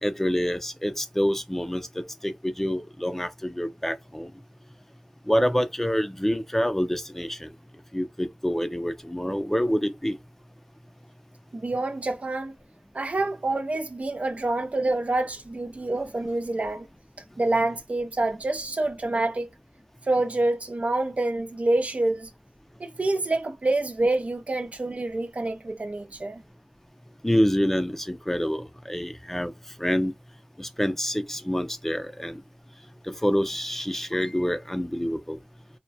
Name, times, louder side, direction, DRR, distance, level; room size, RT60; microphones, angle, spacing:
voice 1, 0.0-4.3 5.3-7.5 7.9-10.2 27.2-29.5 29.8-30.1 30.6-32.4 33.1-35.4, equal, 10° left, 0.4 m, -27 dB
voice 2, 11.5-12.6 12.9-16.9 17.4-19.5 20.1-22.3 22.8-26.4, right 2 dB, 55° right, 0.4 m, -27 dB
2.2 x 2.1 x 2.6 m
wide cardioid pair, 45°, 3 cm